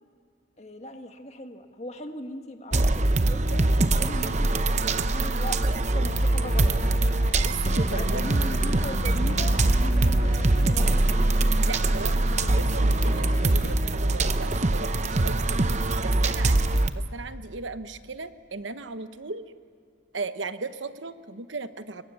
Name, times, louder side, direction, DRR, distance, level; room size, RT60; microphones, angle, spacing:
voice 1, 0.6-6.7 7.8-11.0, left 1 dB, 35° left, 5 dB, 1.7 m, -39 dB
sound 1, 2.7-16.9, right 2 dB, 35° right, 0.8 m, -23 dB
sound 2, 6.1-13.7, left 4 dB, 55° left, 0.6 m, -40 dB
voice 2, 7.4-8.5 11.5-15.6 16.0-19.5 20.1-22.0, right 3 dB, 75° right, 10 dB, 1.1 m, -37 dB
29.5 x 23.0 x 7.1 m, 2.2 s
head